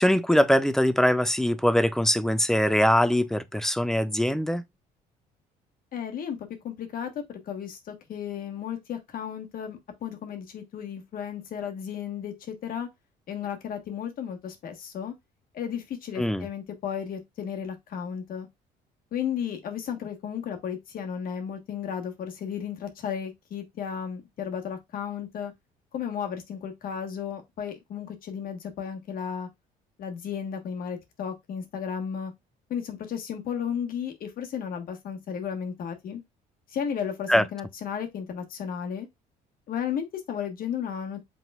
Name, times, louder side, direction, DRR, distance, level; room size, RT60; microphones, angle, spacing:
voice 1, 0.0-4.6 16.2-16.5 37.3-37.5, equal, 5° left, 0.4 m, -22 dB
voice 2, 5.9-12.9 13.3-15.1 15.5-18.5 19.1-25.5 25.9-29.5 30.0-32.3 32.7-36.2 36.7-39.1 39.7-41.2, left 8 dB, 60° left, 1.2 m, -34 dB
5.5 x 4.1 x 2.3 m
cardioid pair, 110°, 17 cm